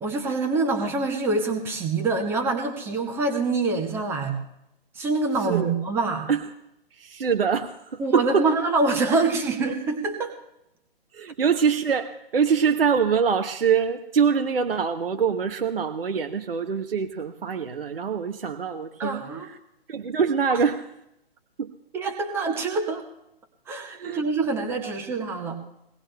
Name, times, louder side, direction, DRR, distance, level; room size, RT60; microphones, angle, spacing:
voice 1, 0.0-4.4 5.0-6.3 8.0-10.3 19.0-19.5 21.9-23.0 23.7-25.6, right 3 dB, 10° right, 4 dB, 0.8 m, -25 dB
voice 2, 5.4-5.7 6.3-6.5 6.9-8.5 11.1-19.6 19.9-20.8 21.6-21.7 23.8-24.2 24.8-24.9, right 6 dB, 65° right, 6 dB, 0.8 m, -24 dB
22.0 x 17.5 x 2.2 m, 0.83 s
figure-of-eight pair, 130°, 30 cm